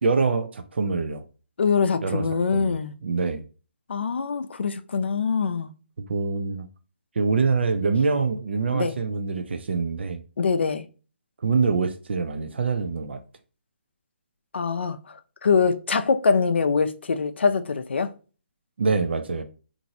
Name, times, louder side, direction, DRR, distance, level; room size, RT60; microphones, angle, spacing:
voice 1, 0.0-1.2 2.0-2.3 2.5-2.8 3.0-3.4 6.1-6.7 7.2-10.2 11.4-13.2 18.8-19.4, right 4 dB, 70° right, 0.4 m, -24 dB
voice 2, 1.6-2.9 3.9-5.7 8.7-8.9 10.4-10.9 14.5-15.0 15.4-18.1, left 5 dB, 75° left, 0.4 m, -23 dB
3.0 x 2.5 x 2.6 m
hypercardioid pair, 160°, 6 cm